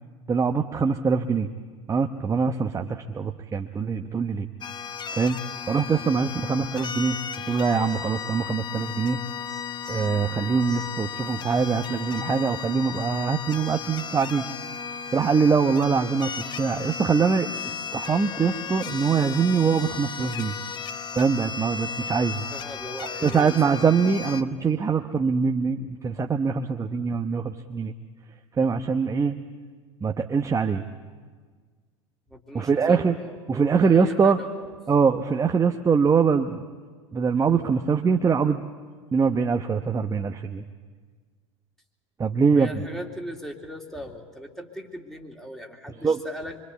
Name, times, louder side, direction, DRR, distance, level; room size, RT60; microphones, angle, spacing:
voice 1, 0.3-1.5 1.9-4.5 5.1-5.4 5.7-7.2 7.5-9.2 9.9-14.5 15.1-16.3 16.6-17.5 17.9-20.6 21.1-22.4 23.2-27.9 28.6-29.3 30.0-30.8 32.5-33.1 33.5-34.4 34.9-36.6 37.1-38.6 39.1-40.6 42.2-42.7 46.0-46.2, right 5 dB, 20° right, 5 dB, 1.0 m, -23 dB
sound 1, 4.6-24.4, left 6 dB, 30° left, 0.9 m, -35 dB
voice 2, 22.5-23.9 32.3-34.7 42.5-46.6, equal, ahead, 1 dB, 3.1 m, -39 dB
25.0 x 24.5 x 8.4 m, 1.5 s
hypercardioid pair, 80°, 16 cm